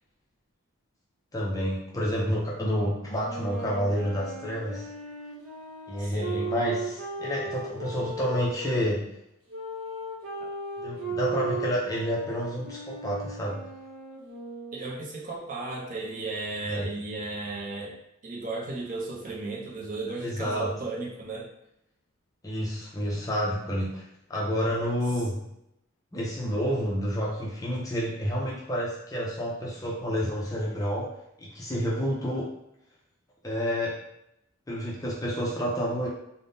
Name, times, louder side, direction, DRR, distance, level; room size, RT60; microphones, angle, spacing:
voice 1, 1.3-4.9 5.9-9.1 10.8-13.6 16.7-16.9 20.2-20.7 22.4-24.0 24.3-25.5 26.1-31.1 31.4-32.5 33.4-34.0 34.7-36.1, equal, 15° left, -4 dB, 0.4 m, -29 dB
sound 1, 3.2-8.8 9.5-15.0, right 3 dB, 75° right, 0.8 m, -37 dB
voice 2, 6.0-6.5 10.4-10.5 14.7-21.5, right 3 dB, 40° right, -3 dB, 0.5 m, -35 dB
3.4 x 2.1 x 2.6 m, 0.81 s
head